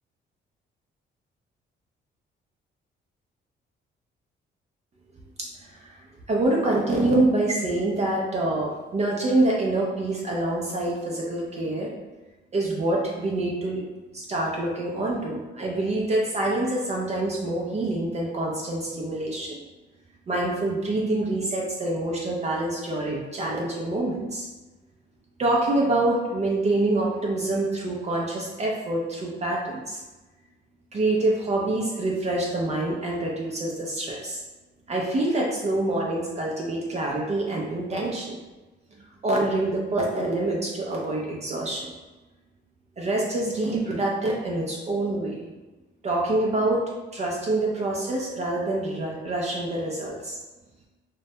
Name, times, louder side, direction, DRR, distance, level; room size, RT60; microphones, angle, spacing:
voice 1, 5.4-6.0 6.3-11.9 12.5-13.8 14.1-19.6 20.3-24.5 25.4-30.0 30.9-34.4 34.9-38.4 39.0-41.9 43.0-45.4 46.0-46.8 47.1-50.3, right 2 dB, 35° right, -2 dB, 0.4 m, -26 dB
2.2 x 2.1 x 2.7 m, 1.2 s
cardioid pair, 90°, 20 cm